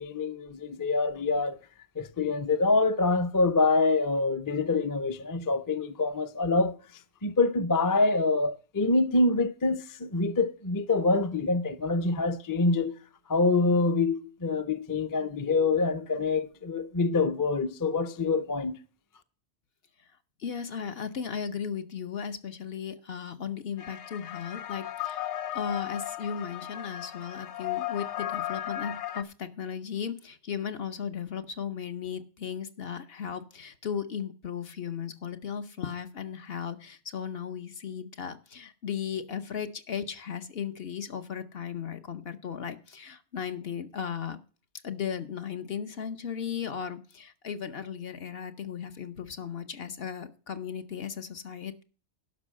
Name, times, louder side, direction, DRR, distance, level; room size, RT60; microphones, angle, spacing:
voice 1, 0.0-1.6 2.0-6.8 7.2-13.0 13.3-18.8, left 3 dB, 25° left, 0.5 m, -26 dB
voice 2, 20.4-25.3 25.5-44.4 44.8-51.8, left 7 dB, 60° left, 1.1 m, -36 dB
sound 1, 23.8-29.2, left 13 dB, 90° left, 1.0 m, -35 dB
12.0 x 5.3 x 7.5 m
omnidirectional pair, 1.1 m